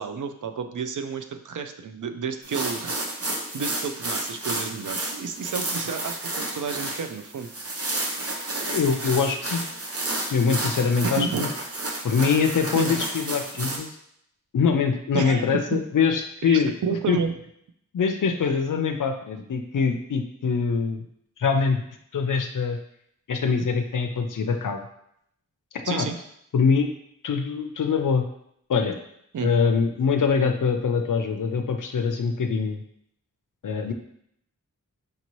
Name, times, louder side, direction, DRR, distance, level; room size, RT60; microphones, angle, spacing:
voice 1, 0.0-3.0 3.5-8.0 11.0-11.5 12.7-13.0 15.1-15.8 16.4-17.4 25.8-26.2 29.3-29.5, right 5 dB, 65° right, 7 dB, 0.5 m, -31 dB
sound 1, 2.4-13.8, right 2 dB, 45° right, 0.8 m, -31 dB
voice 2, 8.7-9.6 10.3-11.5 12.0-13.9 14.5-16.7 17.1-17.2 17.9-21.0 21.4-21.8 22.1-22.8 23.3-24.8 25.9-26.1 26.5-26.9 27.2-28.2 28.7-29.0 29.4-32.8 33.6-33.9, left 5 dB, 70° left, 5 dB, 0.5 m, -23 dB
5.1 x 2.7 x 3.0 m, 0.73 s
wide cardioid pair, 60°, 33 cm